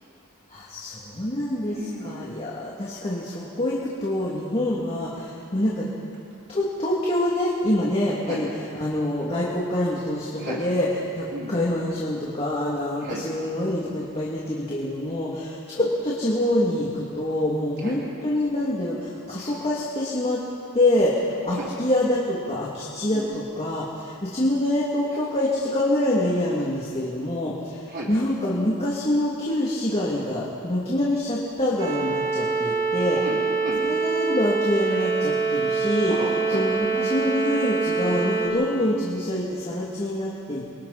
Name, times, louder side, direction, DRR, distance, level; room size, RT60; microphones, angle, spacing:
voice 1, 0.5-5.9 6.5-8.5 8.7-10.9 11.1-20.4 20.7-33.2 33.8-36.2 36.5-40.6, left 1 dB, 30° left, -6 dB, 2.7 m, -26 dB
voice 2, 1.7-2.2 8.2-8.4 10.4-10.7 11.3-11.5 13.0-13.2 15.8-15.9 17.8-18.0 19.4-19.6 21.5-21.7 23.1-23.3 27.9-28.1 33.1-33.8 36.0-36.6 37.2-37.4 38.8-38.9, right 1 dB, 50° right, -5 dB, 3.3 m, -34 dB
sound 1, 31.8-38.5, right 4 dB, 85° right, 7.5 m, -25 dB
29.0 x 24.5 x 4.3 m, 2.5 s
head